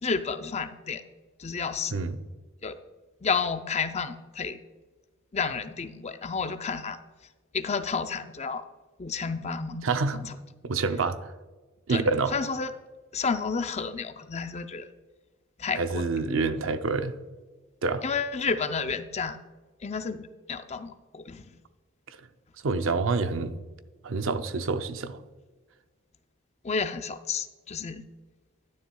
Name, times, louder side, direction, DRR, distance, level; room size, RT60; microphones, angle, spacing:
voice 1, 0.0-1.0 1.4-1.9 2.6-2.8 3.2-4.6 5.3-7.0 7.5-8.6 9.0-9.9 10.1-10.3 11.9-12.0 12.3-12.7 13.1-14.9 15.6-16.1 18.0-19.4 19.8-21.5 26.6-28.1, left 5 dB, 35° left, 9 dB, 0.5 m, -31 dB
voice 2, 9.8-10.2 10.6-11.2 11.9-12.3 15.7-17.2 17.8-18.0 22.6-23.5 24.0-25.2, right 4 dB, 70° right, 10 dB, 0.6 m, -27 dB
11.5 x 10.0 x 2.3 m, 1.3 s
head